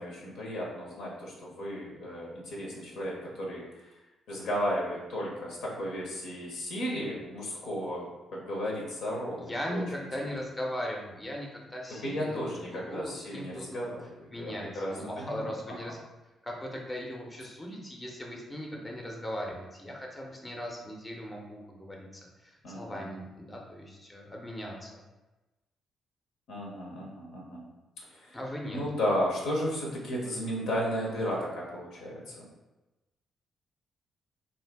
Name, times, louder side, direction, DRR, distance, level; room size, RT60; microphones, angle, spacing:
voice 1, 0.0-3.8 4.3-10.3 12.0-15.5 22.6-23.1 26.5-27.7 28.1-28.4 28.7-32.5, equal, 60° left, -3 dB, 0.7 m, -34 dB
voice 2, 9.4-13.8 14.3-16.0 16.4-25.0 28.3-28.8, equal, 20° left, -1 dB, 0.7 m, -39 dB
2.5 x 2.5 x 3.4 m, 1.1 s
figure-of-eight pair, 40°, 0 cm